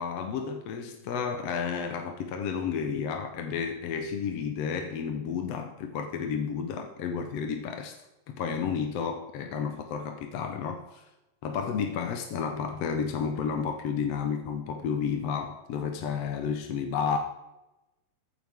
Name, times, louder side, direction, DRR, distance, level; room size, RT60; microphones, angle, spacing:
voice 1, 0.0-8.0 8.3-11.1 11.4-17.2, left 6 dB, 65° left, 5 dB, 1.9 m, -31 dB
22.0 x 9.2 x 3.6 m, 1.0 s
omnidirectional pair, 3.5 m